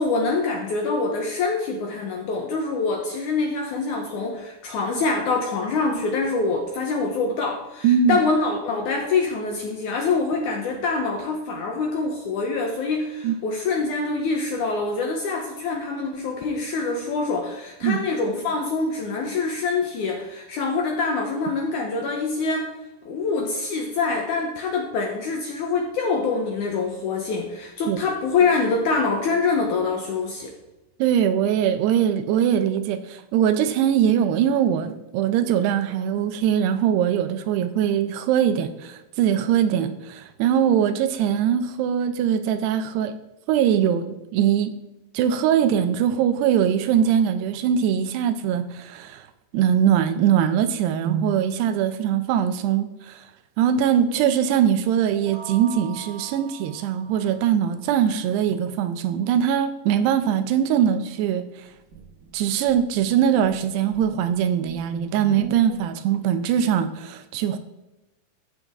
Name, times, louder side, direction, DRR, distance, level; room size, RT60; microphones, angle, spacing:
voice 1, 0.0-22.7 23.1-30.5, left 4 dB, 70° left, 1 dB, 1.9 m, -25 dB
voice 2, 7.8-8.2 13.2-13.4 17.8-18.0 27.9-28.0 31.0-43.1 43.5-44.7 45.1-49.2 49.5-53.2 53.6-61.4 62.3-67.6, right 9 dB, 85° right, 10 dB, 2.8 m, -22 dB
sound 1, 55.1-57.9, right 8 dB, 70° right, 3.0 m, -43 dB
sound 2, 61.7-65.8, right 5 dB, 50° right, 1.0 m, -41 dB
14.0 x 7.0 x 3.6 m, 0.96 s
omnidirectional pair, 4.7 m